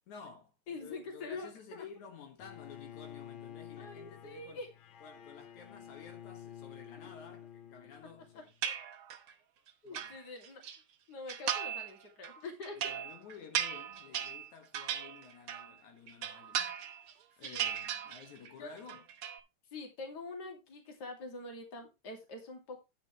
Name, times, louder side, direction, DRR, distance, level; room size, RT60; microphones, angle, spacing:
voice 1, 0.1-4.6 5.0-8.5 9.8-10.2 12.8-16.7 17.1-19.0, left 6 dB, 80° left, 3.0 m, -52 dB
voice 2, 0.7-1.8 3.8-4.7 7.0-7.1 8.3-8.7 9.8-10.7 11.1-12.8 17.4-17.7 18.6-18.7 19.7-22.8, left 3 dB, 35° left, 2.8 m, -45 dB
Bowed string instrument, 2.4-8.5, left 9 dB, 65° left, 1.3 m, -50 dB
sound 1, 8.6-9.3 9.7-10.8 11.3-11.9 12.2-15.8 16.1-17.1 17.4-18.5 18.8-19.4, right 9 dB, 60° right, 1.5 m, -37 dB
10.5 x 9.6 x 3.1 m
omnidirectional pair, 3.3 m